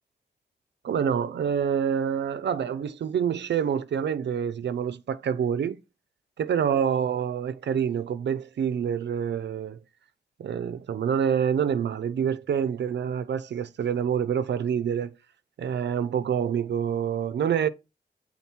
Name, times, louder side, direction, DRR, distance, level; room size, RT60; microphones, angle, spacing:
voice 1, 0.8-5.8 6.4-9.8 10.4-15.1 15.6-17.7, right 8 dB, 85° right, 0.4 m, -27 dB
7.1 x 3.8 x 4.4 m
wide cardioid pair, 85°, 18 cm